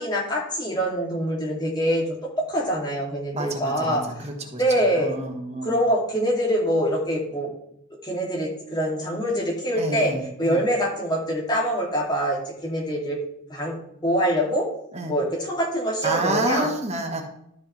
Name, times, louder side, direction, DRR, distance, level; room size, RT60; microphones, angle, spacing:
voice 1, 0.0-4.3 4.6-5.1 5.6-7.5 8.0-10.1 10.4-13.2 13.5-14.7 15.1-16.7, equal, 20° left, -3 dB, 2.5 m, -24 dB
voice 2, 3.3-4.6 5.0-5.8 9.8-10.6 14.9-15.1 16.0-17.2, right 2 dB, 30° right, 3 dB, 1.3 m, -29 dB
13.0 x 5.7 x 3.3 m, 0.76 s
head